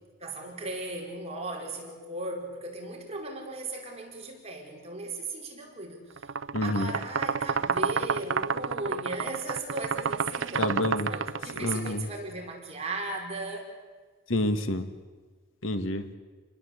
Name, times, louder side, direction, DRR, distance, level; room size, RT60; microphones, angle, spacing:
voice 1, 0.2-6.3 6.6-13.7, right 2 dB, 30° right, 1 dB, 5.0 m, -37 dB
sound 1, 6.2-11.9, right 6 dB, 85° right, 0.8 m, -30 dB
voice 2, 6.5-6.9 10.6-11.1 11.6-12.1 14.3-14.9 15.6-16.1, left 1 dB, 90° left, 8 dB, 2.0 m, -28 dB
29.5 x 21.0 x 8.3 m, 1.4 s
head